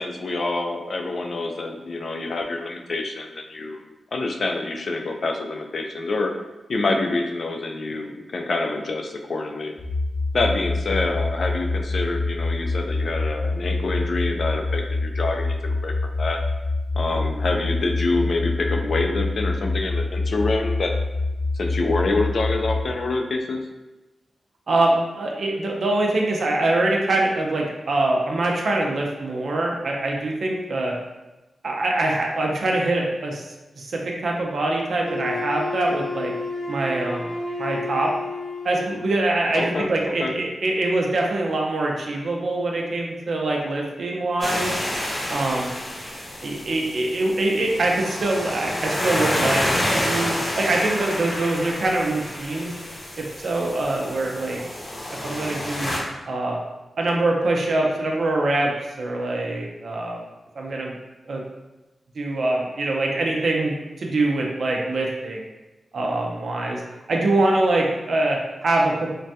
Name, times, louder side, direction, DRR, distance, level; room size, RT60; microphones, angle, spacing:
voice 1, 0.0-3.8 4.1-6.3 6.7-9.7 10.3-15.5 15.8-16.4 16.9-21.0 21.5-23.6 39.6-39.9 40.2-40.3, left 3 dB, 65° left, 3 dB, 0.3 m, -26 dB
sound 1, 9.8-22.8, left 3 dB, 5° right, 0.4 m, -26 dB
voice 2, 24.7-30.9 31.6-33.4 33.8-36.3 36.7-37.3 37.6-38.1 38.6-44.8 45.3-45.7 46.4-49.6 49.9-52.7 53.2-54.6 55.2-55.9 56.3-56.6 57.0-58.7 59.0-60.2 60.6-60.9 61.3-61.4 62.2-65.5 65.9-66.8 67.1-69.1, right 2 dB, 75° right, 0 dB, 0.5 m, -24 dB
Wind instrument woodwind instrument, 35.0-39.2, left 3 dB, 80° left, 0.8 m, -31 dB
sound 2, 44.4-56.0, left 1 dB, 35° left, 0.7 m, -28 dB
3.2 x 2.2 x 2.7 m, 1.1 s
cardioid pair, 45°, 0 cm